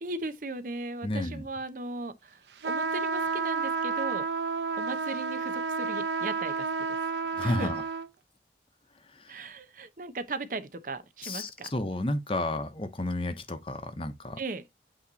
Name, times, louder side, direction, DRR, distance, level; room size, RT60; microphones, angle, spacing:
voice 1, 0.0-4.2 4.8-7.0 7.4-7.7 9.3-11.7 14.4-14.6, right 2 dB, 50° right, 0.7 m, -37 dB
voice 2, 1.0-1.4 7.3-7.8 9.2-9.3 11.2-14.4, left 1 dB, 30° left, 0.9 m, -32 dB
sound 1, 2.6-8.1, right 5 dB, 85° right, 0.8 m, -31 dB
8.6 x 3.0 x 4.0 m
head